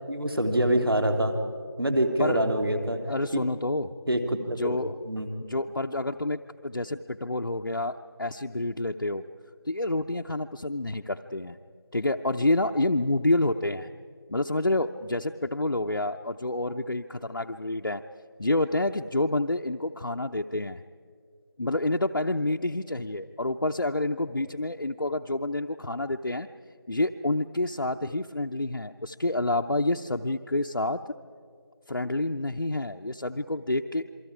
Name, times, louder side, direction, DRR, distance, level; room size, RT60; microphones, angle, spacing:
voice 1, 0.1-1.4 1.8-3.0 4.1-4.8 5.1-5.3, right 1 dB, 65° right, 6 dB, 2.6 m, -25 dB
voice 2, 3.1-3.9 4.5-4.9 5.4-9.2 9.7-11.6 11.9-13.9 14.3-18.0 18.4-20.8 21.6-26.5 26.9-31.1 31.9-34.1, left 2 dB, 65° left, 3 dB, 0.7 m, -28 dB
27.5 x 24.0 x 4.9 m, 2.2 s
figure-of-eight pair, 180°, 13 cm